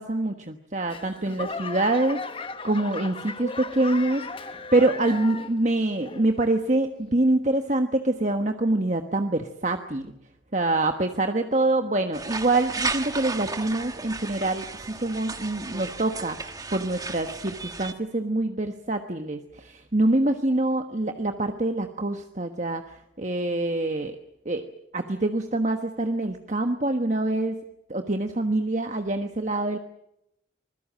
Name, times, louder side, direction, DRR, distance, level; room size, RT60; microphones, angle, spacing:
voice 1, 0.0-10.1 10.5-24.2 24.4-24.7 24.9-27.6 27.9-29.8, right 2 dB, 40° right, 5 dB, 1.3 m, -25 dB
Laughter / Clapping / Crowd, 0.9-5.7 6.0-6.5 7.1-7.2, left 3 dB, 30° left, 1.3 m, -36 dB
sound 1, 12.1-17.9, right 3 dB, 20° right, 1.4 m, -34 dB
25.5 x 21.0 x 7.6 m, 0.80 s
head